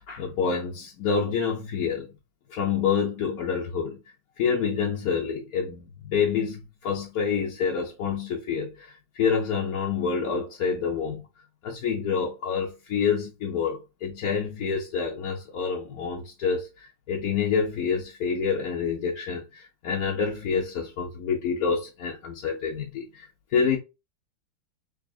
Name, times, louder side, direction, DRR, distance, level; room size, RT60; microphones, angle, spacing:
voice 1, 0.0-2.1 2.5-4.0 4.4-11.3 11.6-23.8, left 6 dB, 65° left, 0.9 m, -27 dB
3.7 x 3.5 x 2.3 m
omnidirectional pair, 2.2 m